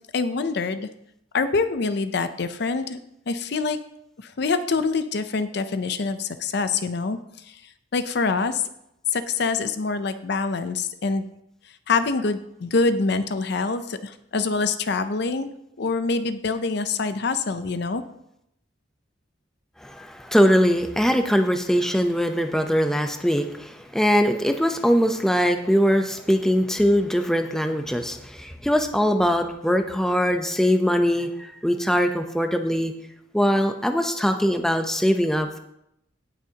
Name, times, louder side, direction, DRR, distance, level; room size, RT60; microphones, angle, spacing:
voice 1, 0.1-0.9 1.3-3.0 3.3-3.8 4.2-7.2 7.9-8.6 9.1-11.3 11.9-15.5 15.8-18.0, left 4 dB, 60° left, 11 dB, 0.5 m, -25 dB
voice 2, 19.8-31.3 31.6-32.9 33.3-35.6, equal, 5° left, 5 dB, 0.6 m, -21 dB
17.5 x 6.2 x 2.9 m, 0.79 s
head